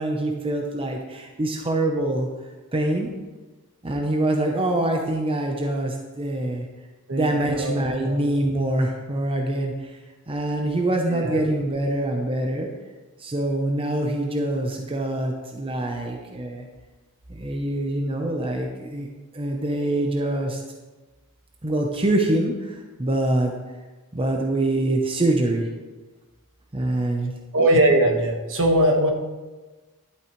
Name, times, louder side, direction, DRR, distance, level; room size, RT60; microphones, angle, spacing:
voice 1, 0.0-2.3 2.7-3.1 3.8-6.7 7.1-10.0 10.3-12.7 13.2-16.7 17.3-19.1 19.3-20.6 21.6-23.5 24.1-25.7 26.7-27.3, right 1 dB, 25° right, 2 dB, 0.8 m, -25 dB
voice 2, 7.1-8.2 11.1-11.4 27.5-29.1, right 1 dB, 60° right, 2 dB, 1.4 m, -21 dB
11.5 x 8.4 x 3.1 m, 1.2 s
head